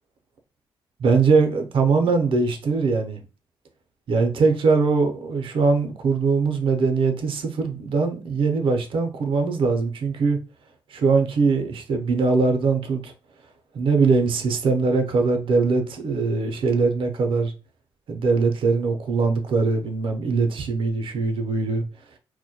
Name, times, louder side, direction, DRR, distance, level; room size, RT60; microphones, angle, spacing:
voice 1, 1.0-3.2 4.1-10.4 10.9-13.1 13.7-17.5 18.1-21.8, right 4 dB, 65° right, 0.5 m, -21 dB
2.1 x 2.1 x 2.7 m
cardioid pair, 95°, 10 cm